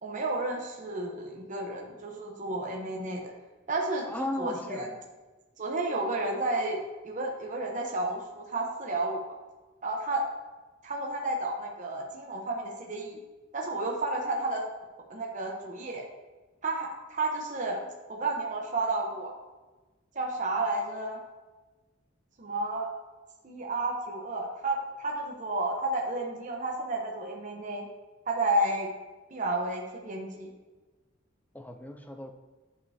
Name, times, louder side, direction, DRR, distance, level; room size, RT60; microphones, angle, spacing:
voice 1, 0.0-3.3 3.7-4.9 5.6-9.3 9.8-10.2 10.8-13.2 13.5-14.6 15.1-16.1 16.6-19.3 20.1-21.2 22.4-22.9 23.4-27.9 28.3-28.9 29.3-30.5, right 2 dB, 40° right, 0 dB, 0.9 m, -31 dB
voice 2, 4.1-5.0 31.5-32.3, left 1 dB, 10° left, 5 dB, 0.4 m, -36 dB
9.5 x 5.3 x 2.8 m, 1.2 s
head